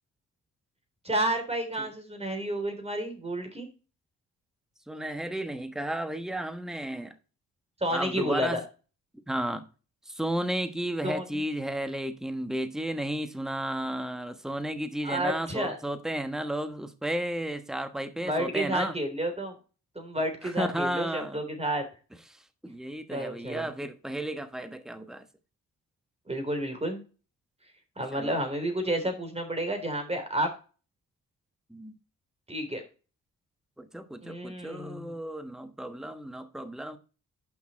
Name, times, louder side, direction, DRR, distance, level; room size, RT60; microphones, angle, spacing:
voice 1, 1.0-3.7 7.8-8.6 11.0-11.2 15.0-15.8 18.2-19.6 20.0-21.8 23.1-23.7 26.3-27.0 28.0-30.5 32.5-32.8 34.2-35.1, right 1 dB, 15° right, 3.5 m, -30 dB
voice 2, 4.9-7.2 7.9-8.6 9.3-9.7 10.0-19.0 20.4-21.4 22.3-25.3 28.1-28.3 31.7-31.9 33.8-37.0, right 1 dB, ahead, 1.2 m, -33 dB
8.8 x 5.8 x 4.3 m
cardioid pair, 60°, 36 cm